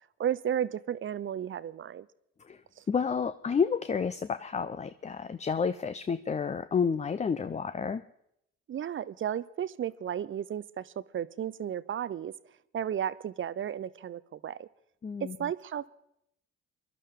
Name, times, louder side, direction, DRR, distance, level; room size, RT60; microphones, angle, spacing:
voice 1, 0.2-2.1 2.8-2.9 8.7-12.3 12.7-14.7 15.2-15.9, right 9 dB, 35° right, 17 dB, 0.6 m, -33 dB
voice 2, 2.9-8.0 15.0-15.4, left 6 dB, 20° left, 12 dB, 0.5 m, -30 dB
22.5 x 11.5 x 3.7 m, 0.77 s
hypercardioid pair, 60°, 33 cm